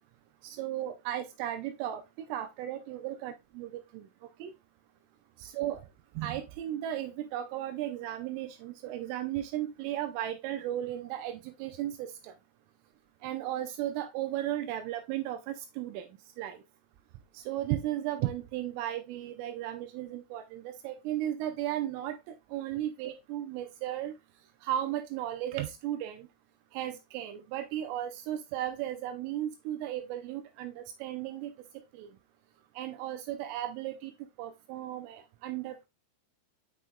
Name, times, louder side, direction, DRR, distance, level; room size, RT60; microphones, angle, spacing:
voice 1, 0.4-4.1 4.4-4.5 5.4-5.8 6.2-12.3 13.2-16.1 16.4-16.6 17.3-24.1 24.6-26.3 26.7-31.5 31.9-32.1 32.8-34.1 34.4-35.9, right 12 dB, 85° right, 7 dB, 3.2 m, -35 dB
7.3 x 6.1 x 2.2 m, 0.22 s
omnidirectional pair, 5.7 m